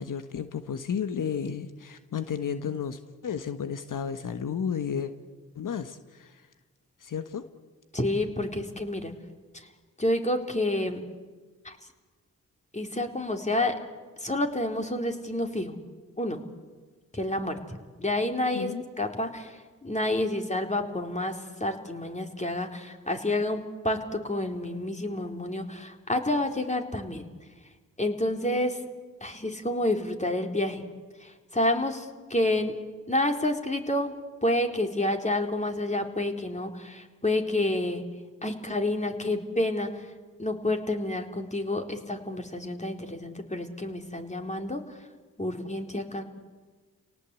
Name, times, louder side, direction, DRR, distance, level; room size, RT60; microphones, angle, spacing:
voice 1, 0.0-5.1 5.5-6.5 7.0-7.4 18.5-18.8, left 7 dB, 60° left, 10 dB, 1.4 m, -32 dB
voice 2, 7.9-9.1 9.5-9.7 10.0-11.0 11.6-11.8 12.7-13.7 14.2-15.8 16.2-16.4 17.1-17.6 18.0-18.7 19.0-21.3 21.6-27.2 28.0-28.8 29.2-30.8 31.2-32.7 33.1-34.1 34.4-38.0 38.4-39.9 40.4-44.8 45.4-46.2, left 1 dB, 20° left, 4 dB, 3.9 m, -29 dB
29.5 x 18.0 x 8.3 m, 1.4 s
supercardioid pair, 45°, 36 cm